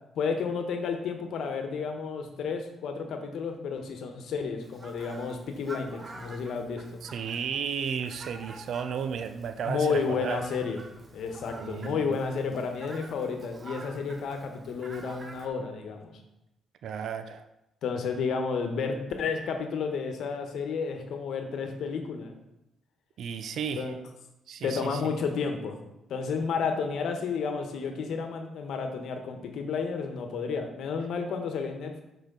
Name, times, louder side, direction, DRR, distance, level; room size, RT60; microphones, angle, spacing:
voice 1, 0.2-7.0 9.6-10.8 11.1-16.1 17.8-22.4 23.8-24.0 24.6-25.8 26.1-32.0, left 5 dB, 70° left, 5 dB, 1.1 m, -31 dB
Fowl, 4.6-15.5, right 2 dB, 35° right, 1.0 m, -48 dB
voice 2, 7.0-10.4 11.6-12.2 16.8-17.4 23.2-24.0 24.5-25.0, right 7 dB, 70° right, 8 dB, 0.5 m, -33 dB
8.0 x 5.0 x 3.8 m, 0.90 s
cardioid pair, 90°, 0 cm